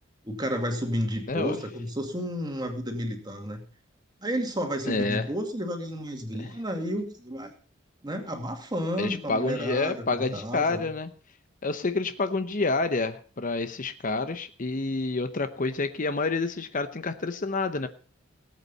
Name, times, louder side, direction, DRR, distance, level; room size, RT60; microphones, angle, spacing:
voice 1, 0.2-3.6 4.2-7.5 8.0-10.9, equal, 20° right, 4 dB, 2.3 m, -31 dB
voice 2, 4.9-5.3 6.4-6.5 9.0-11.1 11.6-17.9, left 3 dB, 40° left, 10 dB, 0.8 m, -28 dB
18.5 x 8.3 x 5.4 m, 0.40 s
head